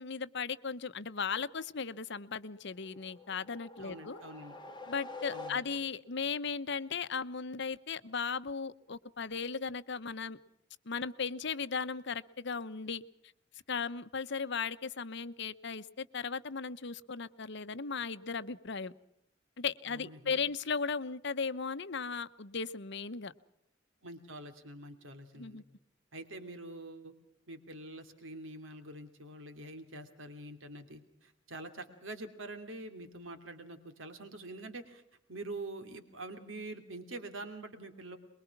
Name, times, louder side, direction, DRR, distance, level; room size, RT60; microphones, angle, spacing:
voice 1, 0.0-4.2 4.9-10.4 10.8-13.0 13.7-18.9 19.6-23.3 25.3-25.6, left 5 dB, 65° left, 13 dB, 1.0 m, -37 dB
sound 1, 2.8-6.1, left 3 dB, 25° left, 1.6 m, -47 dB
voice 2, 3.8-4.6 5.3-5.6 19.9-20.4 24.0-25.6 26.1-27.1 27.5-35.0 35.3-38.2, right 2 dB, 85° right, 8 dB, 2.8 m, -45 dB
23.5 x 22.5 x 6.0 m, 0.77 s
head